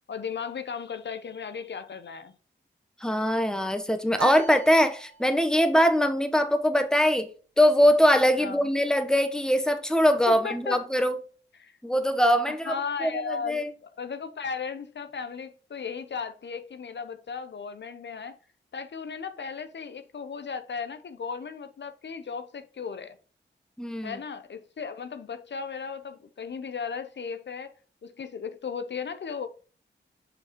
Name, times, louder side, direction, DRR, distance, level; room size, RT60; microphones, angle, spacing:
voice 1, 0.1-2.3 8.4-8.7 10.3-10.8 11.6-11.8 12.5-18.4 18.7-23.2 24.0-27.7 28.0-29.5, left 5 dB, 60° left, 0.6 m, -36 dB
voice 2, 3.0-7.3 7.6-11.1 11.8-12.7 13.0-13.7 23.8-24.2, equal, 5° left, 0.9 m, -22 dB
sound 1, 4.2-5.6, right 6 dB, 80° right, 0.7 m, -38 dB
6.4 x 5.0 x 3.0 m
cardioid pair, 45°, 20 cm